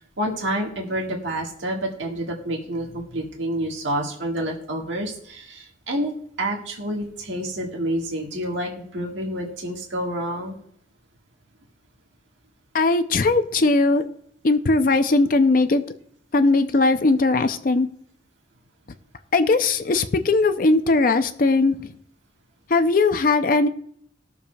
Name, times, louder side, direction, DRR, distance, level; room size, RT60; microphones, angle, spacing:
voice 1, 0.0-6.1 6.4-10.5, right 1 dB, 85° right, -1 dB, 1.7 m, -28 dB
voice 2, 12.7-14.0 14.4-15.8 16.3-17.9 19.3-21.9 22.7-23.7, left 3 dB, 45° left, 10 dB, 0.5 m, -19 dB
20.5 x 7.0 x 2.3 m, 0.65 s
head